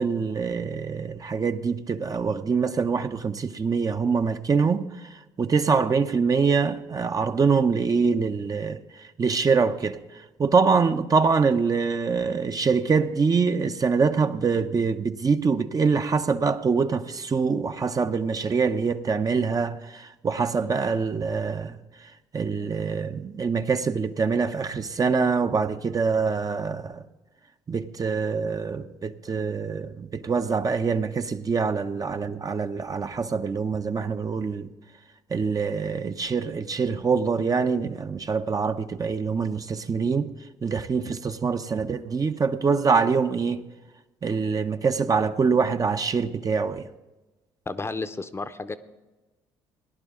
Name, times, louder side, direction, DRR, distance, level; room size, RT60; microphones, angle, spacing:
voice 1, 0.0-4.9 5.4-8.8 9.2-10.0 10.4-21.8 22.3-27.0 27.7-34.7 35.3-40.3 40.6-43.6 44.2-46.9, right 5 dB, 30° right, 0.7 m, -24 dB
voice 2, 47.7-48.8, left 3 dB, 25° left, 0.7 m, -32 dB
18.0 x 11.0 x 3.6 m
hypercardioid pair, 55°, 11 cm